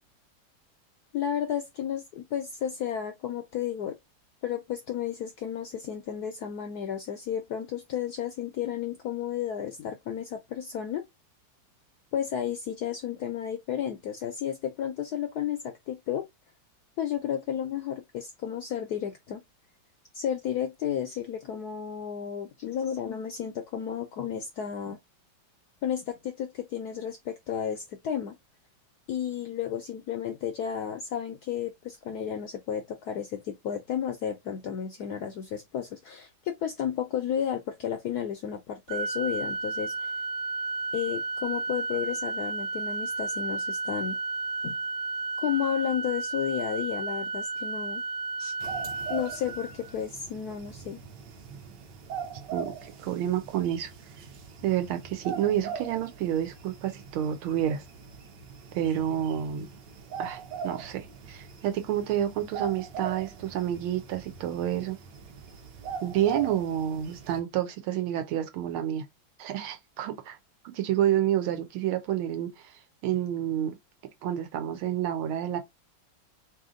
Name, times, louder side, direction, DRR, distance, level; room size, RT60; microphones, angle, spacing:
voice 1, 1.1-3.9 4.4-11.0 12.1-16.3 17.0-19.4 20.1-25.0 25.8-28.3 29.1-40.1 40.9-44.2 44.6-44.8 45.4-48.0 48.4-48.5 49.1-51.0, left 9 dB, 75° left, 0.9 m, -32 dB
Organ, 38.9-49.9, right 3 dB, 50° right, 0.9 m, -33 dB
sound 1, 48.6-67.4, right 6 dB, 70° right, 1.3 m, -41 dB
voice 2, 52.5-53.9 54.6-57.8 58.7-59.7 60.2-65.0 66.0-69.0 69.4-70.4 70.6-72.7 73.0-73.7 74.2-75.6, right 11 dB, 90° right, 1.6 m, -29 dB
3.4 x 2.8 x 3.6 m
omnidirectional pair, 2.2 m